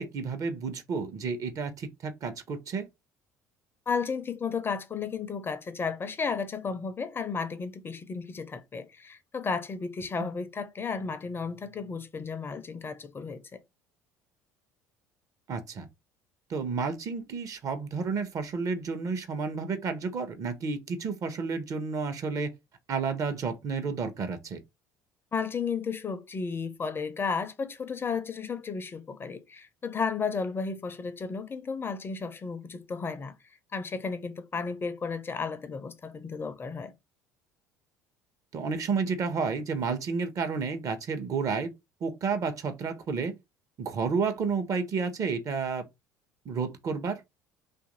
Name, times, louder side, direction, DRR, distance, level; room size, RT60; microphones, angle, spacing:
voice 1, 0.0-2.9 10.2-10.3 15.5-15.9 16.5-22.5 22.9-24.6 38.5-41.7 42.0-43.3 43.8-45.8 46.4-47.2, right 5 dB, 40° right, 0.8 m, -31 dB
voice 2, 3.9-13.6 25.3-33.4 33.7-36.9, left 5 dB, 25° left, 0.5 m, -33 dB
2.8 x 2.5 x 3.9 m
figure-of-eight pair, 60°, 8 cm